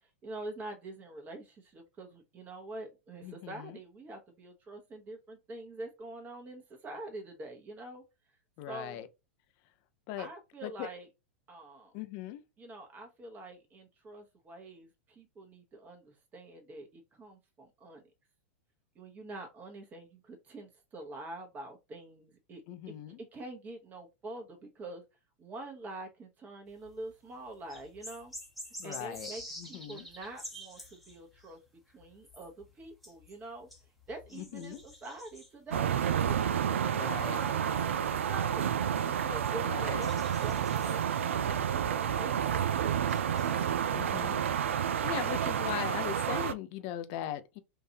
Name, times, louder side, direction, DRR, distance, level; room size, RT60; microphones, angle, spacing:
voice 1, 0.0-8.0 8.7-9.1 10.2-11.1 11.5-11.9 12.6-18.0 18.9-22.6 22.9-25.0 25.4-28.3 28.8-31.6 31.9-33.7 34.1-35.9 36.3-38.7 39.0-43.7, right 2 dB, 25° right, 1.0 m, -46 dB
voice 2, 3.2-3.8 8.6-9.1 10.1-10.3 10.6-10.9 11.9-12.4 22.7-23.2 28.8-29.3 29.6-30.1 34.3-34.8 36.9-37.4 39.7-40.1 43.9-47.6, left 11 dB, 45° left, 0.6 m, -40 dB
sound 1, 26.7-27.1 27.5-44.8, equal, ahead, 1.0 m, -50 dB
sound 2, 35.7-46.5, right 8 dB, 75° right, 0.4 m, -30 dB
3.8 x 2.6 x 2.8 m
hypercardioid pair, 100°, 7 cm